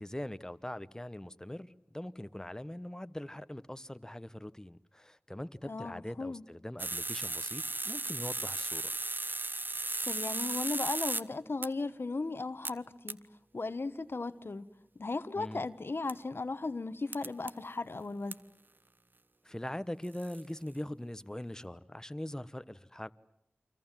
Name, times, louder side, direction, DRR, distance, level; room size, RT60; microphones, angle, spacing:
voice 1, 0.0-8.9 15.3-15.6 19.4-23.1, left 1 dB, 15° left, 1.1 m, -42 dB
voice 2, 5.6-6.4 10.1-13.2 13.5-14.7 15.0-18.4, left 3 dB, 65° left, 1.2 m, -36 dB
sound 1, 6.8-11.2 11.6-11.7 12.6-12.7 13.1-13.2 16.1-16.2 17.1-17.5 18.3-18.4 20.0-20.4, right 2 dB, 50° right, 1.1 m, -35 dB
29.5 x 25.0 x 7.5 m
wide cardioid pair, 50°, 4 cm